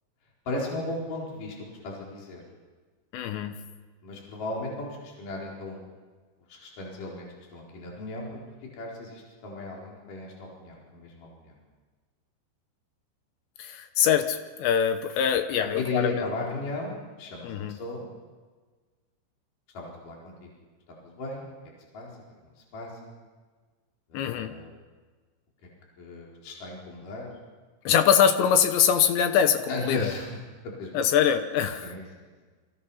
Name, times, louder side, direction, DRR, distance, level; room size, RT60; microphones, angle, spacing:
voice 1, 0.5-2.4 4.0-5.8 6.5-11.5 15.6-18.1 19.7-20.5 21.0-21.5 21.9-22.1 22.4-23.1 24.1-24.7 26.0-27.3 29.7-30.3 30.6-31.1 31.8-32.3, left 2 dB, 45° left, -3 dB, 5.5 m, -36 dB
voice 2, 3.1-3.6 13.6-16.3 17.4-17.8 24.1-24.5 27.8-30.1 30.9-31.9, left 8 dB, 75° left, 8 dB, 3.1 m, -23 dB
28.0 x 24.5 x 5.7 m, 1.4 s
omnidirectional pair, 5.6 m